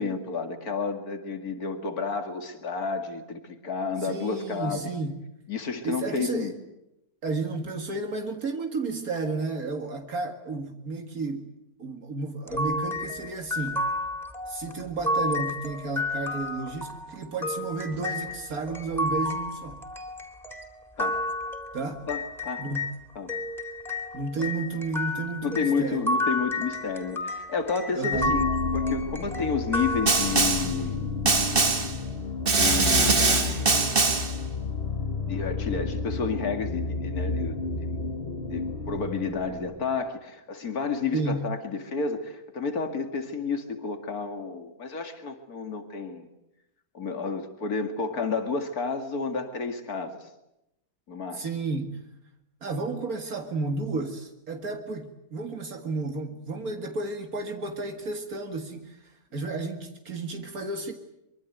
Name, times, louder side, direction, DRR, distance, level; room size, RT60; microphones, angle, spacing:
voice 1, 0.0-4.9 5.5-6.5 21.0-21.2 22.1-22.6 23.2-23.3 25.4-31.1 32.5-34.0 35.2-38.0 38.4-46.3 46.9-50.3 51.1-51.5, left 4 dB, 90° left, 7 dB, 2.7 m, -31 dB
voice 2, 4.0-5.1 5.8-6.5 7.2-11.5 11.8-13.9 14.5-19.8 21.7-22.0 22.6-22.8 24.1-26.0 27.9-28.4 41.1-41.4 51.3-52.0 52.6-60.9, right 3 dB, 75° right, 5 dB, 2.4 m, -32 dB
sound 1, 12.5-23.0 23.3-30.7, left 1 dB, ahead, 3.3 m, -32 dB
sound 2, 28.1-40.0, left 4 dB, 40° left, 1.9 m, -31 dB
Snare drum, 30.1-30.8 31.3-32.0 32.5-34.4, right 4 dB, 40° right, 2.0 m, -22 dB
24.5 x 24.0 x 9.4 m, 0.87 s
omnidirectional pair, 1.5 m